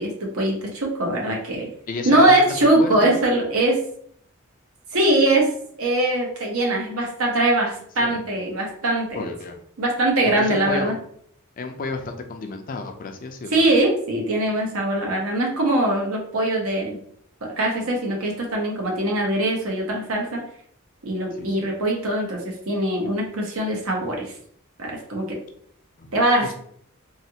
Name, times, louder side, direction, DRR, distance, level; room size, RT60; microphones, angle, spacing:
voice 1, 0.0-1.7 2.0-3.8 4.9-5.5 5.8-9.2 9.8-10.9 13.5-17.0 17.4-20.4 21.0-22.4 22.7-24.3 24.8-25.2 26.1-26.5, right 1 dB, 80° right, 0 dB, 0.9 m, -22 dB
voice 2, 1.9-3.1 8.0-8.2 9.1-9.6 10.2-11.0 11.6-13.7 21.4-21.7 26.0-26.5, left 3 dB, 40° left, 5 dB, 0.4 m, -32 dB
3.2 x 2.3 x 2.8 m, 0.64 s
head